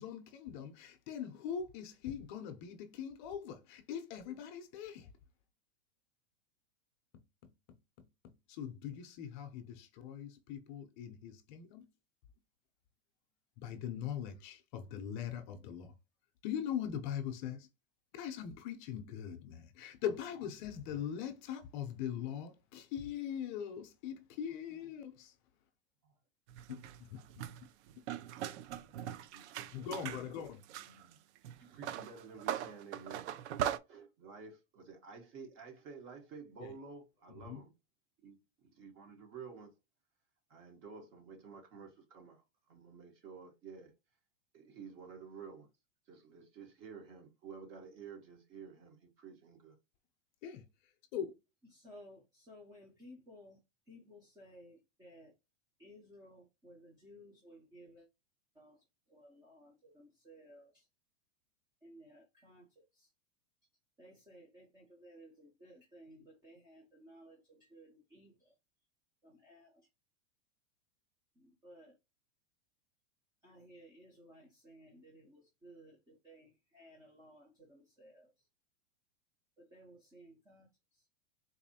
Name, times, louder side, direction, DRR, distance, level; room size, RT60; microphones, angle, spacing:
voice 1, 0.0-5.1 8.5-11.8 13.6-15.9 16.4-17.7 18.1-25.3 26.7-26.8 27.1-27.2 29.7-30.6 36.6-36.7 37.4-37.6 50.4-50.6 51.1-51.3, left 9 dB, 40° left, 0.6 m, -41 dB
sound 1, 26.5-30.2 30.6-33.8, right 10 dB, 65° right, 0.5 m, -40 dB
voice 2, 29.3-30.4 30.7-33.4 33.9-37.7 38.2-39.8 40.5-43.9 44.5-45.7 46.0-49.8, right 5 dB, 35° right, 1.1 m, -52 dB
voice 3, 51.6-53.6 53.9-55.3 55.8-58.1 58.5-60.9 61.8-63.1 64.0-68.6 69.2-69.9 71.3-72.0 73.4-78.5 79.6-81.1, equal, 10° right, 0.6 m, -58 dB
4.1 x 2.7 x 2.7 m
supercardioid pair, 145°, 37 cm